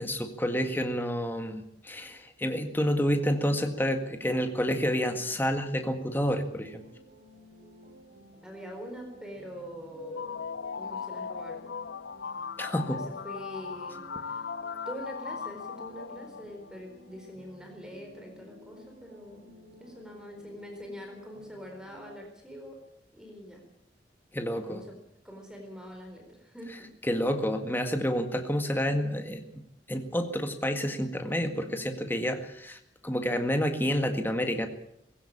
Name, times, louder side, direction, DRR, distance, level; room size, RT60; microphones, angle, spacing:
voice 1, 0.0-6.8 12.6-13.0 24.3-24.8 27.0-29.6 29.9-34.7, equal, 10° left, 6 dB, 1.8 m, -29 dB
sound 1, 3.0-22.2, equal, 45° right, 6.1 m, -54 dB
voice 2, 8.4-10.4 10.7-11.7 12.9-14.0 14.3-14.4 14.9-19.5 19.8-22.8 23.1-23.6 24.7-25.0 25.2-26.9, equal, 5° right, 2 dB, 4.3 m, -44 dB
sound 2, 10.0-16.8, left 6 dB, 90° left, 0.7 m, -38 dB
20.0 x 17.0 x 8.7 m, 0.76 s
head